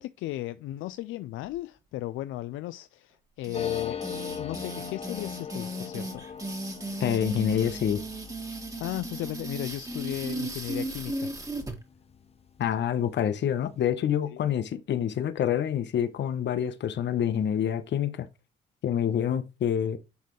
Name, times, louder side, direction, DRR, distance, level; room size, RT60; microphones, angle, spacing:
voice 1, 0.0-4.0 4.4-6.3 8.8-11.3 14.3-14.4, left 15 dB, 85° left, 0.4 m, -35 dB
sound 1, 3.4-11.7, right 1 dB, 15° right, 1.9 m, -36 dB
sound 2, 3.5-12.7 13.0-13.1 13.3-13.9, left 7 dB, 30° left, 0.7 m, -41 dB
voice 2, 7.0-8.0 12.6-18.3 18.8-20.0, left 9 dB, 65° left, 1.0 m, -27 dB
10.5 x 4.2 x 3.2 m
cardioid pair, 90°, 20 cm